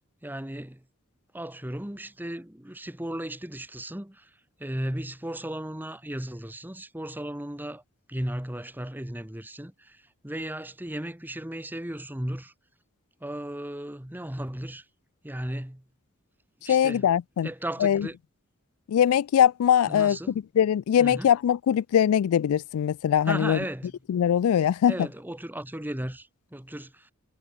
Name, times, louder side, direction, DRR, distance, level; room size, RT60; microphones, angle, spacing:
voice 1, 0.2-0.8 1.3-4.3 4.6-7.8 8.1-12.5 13.2-14.8 15.2-15.8 16.6-17.1 17.4-18.2 19.9-20.4 21.0-21.3 23.2-23.9 24.9-27.1, right 1 dB, 10° right, 1.2 m, -35 dB
voice 2, 16.7-17.5 17.8-18.1 18.9-20.2 20.6-23.6 24.1-24.9, left 9 dB, 75° left, 0.3 m, -22 dB
head